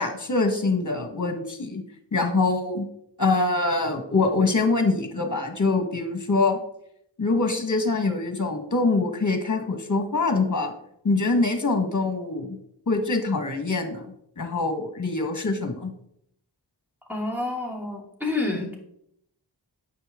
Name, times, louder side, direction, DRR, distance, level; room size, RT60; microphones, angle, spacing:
voice 1, 0.0-1.8 2.1-2.9 3.2-6.6 7.2-10.7 11.0-12.6 12.9-15.9, left 3 dB, 40° left, 6 dB, 1.6 m, -24 dB
voice 2, 17.1-18.7, left 2 dB, 5° right, -2 dB, 2.7 m, -28 dB
9.5 x 7.0 x 3.7 m, 0.75 s
wide cardioid pair, 55°, 44 cm